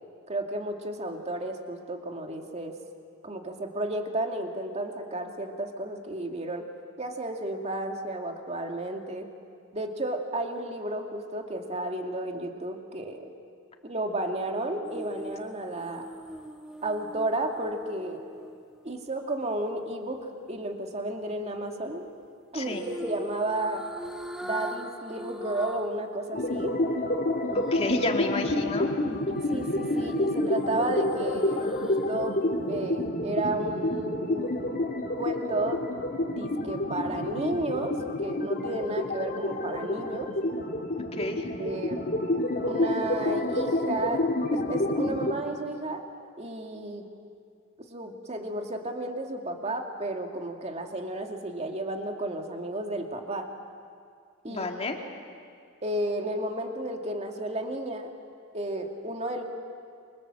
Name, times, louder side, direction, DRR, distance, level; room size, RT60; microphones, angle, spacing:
voice 1, 0.3-2.8 3.2-6.7 7.0-9.3 9.7-13.3 13.8-16.1 16.8-18.2 18.8-22.1 22.5-23.8 24.4-26.8 29.5-32.4 32.6-34.5 35.2-35.8 36.2-40.3 41.6-42.0 42.6-46.0 46.4-47.0 47.9-53.5 54.4-54.7 55.8-58.1 58.5-59.4, right 1 dB, 35° right, 3 dB, 2.3 m, -32 dB
sound 1, 14.8-19.1 22.7-26.0 26.4-26.5 29.3-32.2 32.6-32.7, equal, 5° right, 1.3 m, -40 dB
sound 2, 26.3-45.3, left 1 dB, 45° left, 2.1 m, -29 dB
voice 2, 27.5-28.9 41.1-41.5 54.5-55.0, left 2 dB, 30° left, 2 dB, 2.4 m, -31 dB
29.0 x 24.5 x 7.7 m, 2.3 s
head